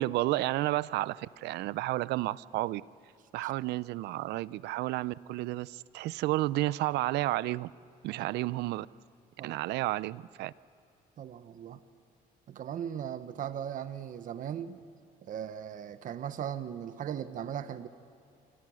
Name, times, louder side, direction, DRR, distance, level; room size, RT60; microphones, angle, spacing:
voice 1, 0.0-2.8 3.3-7.7 8.0-8.9 9.4-10.5, right 17 dB, 80° right, 19 dB, 0.6 m, -31 dB
voice 2, 11.2-11.8 12.5-14.8 15.2-17.9, right 9 dB, 50° right, 11 dB, 1.1 m, -38 dB
27.0 x 25.5 x 6.3 m, 2.7 s
cardioid pair, 110°, 17 cm